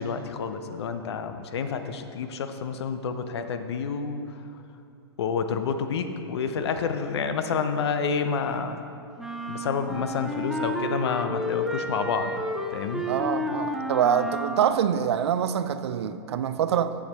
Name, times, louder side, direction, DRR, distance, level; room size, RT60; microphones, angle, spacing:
voice 1, 0.0-4.2 5.2-8.8 9.5-12.3 12.7-13.0, left 6 dB, 75° left, 8 dB, 0.6 m, -29 dB
sound 1, 9.2-14.9, equal, ahead, 0.4 m, -31 dB
voice 2, 13.1-16.9, right 8 dB, 80° right, 12 dB, 0.4 m, -25 dB
7.3 x 6.9 x 4.3 m, 2.5 s
hypercardioid pair, 120°, 14 cm